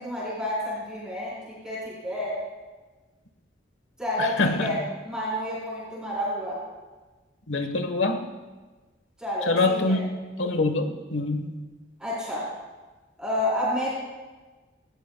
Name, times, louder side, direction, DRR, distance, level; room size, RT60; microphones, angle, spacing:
voice 1, 0.0-2.4 4.0-6.6 9.2-10.0 12.0-12.5 13.2-13.9, left 1 dB, 5° right, -8 dB, 4.2 m, -30 dB
voice 2, 4.2-4.7 7.5-8.2 9.5-10.0 10.4-11.5, left 3 dB, 85° left, 7 dB, 1.3 m, -25 dB
18.5 x 16.5 x 2.3 m, 1.3 s
head